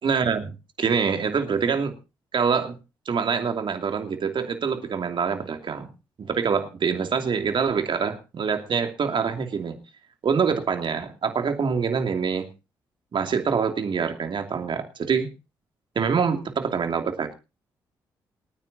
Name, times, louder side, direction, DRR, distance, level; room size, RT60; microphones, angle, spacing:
voice 1, 0.0-0.5 0.8-1.9 2.3-2.8 3.1-5.9 6.2-9.8 10.2-12.5 13.1-15.3 15.9-17.3, right 6 dB, 55° right, 5 dB, 2.7 m, -25 dB
28.0 x 9.7 x 2.8 m, 0.30 s
hypercardioid pair, 45°, 10 cm